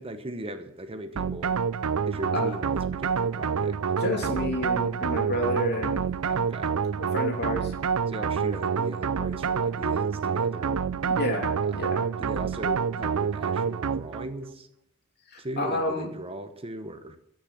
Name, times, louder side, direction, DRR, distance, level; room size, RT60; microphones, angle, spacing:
voice 1, 0.0-1.6 2.1-3.8 6.2-6.8 8.1-10.8 11.7-11.9 12.2-14.7 15.4-17.2, right 1 dB, 25° right, 8 dB, 1.0 m, -38 dB
sound 1, 1.2-14.3, right 6 dB, 75° right, 0.5 m, -27 dB
voice 2, 4.0-6.1 7.1-7.7 11.1-12.0 15.3-16.1, left 1 dB, 50° left, 2 dB, 2.9 m, -30 dB
14.5 x 6.6 x 9.8 m, 0.79 s
head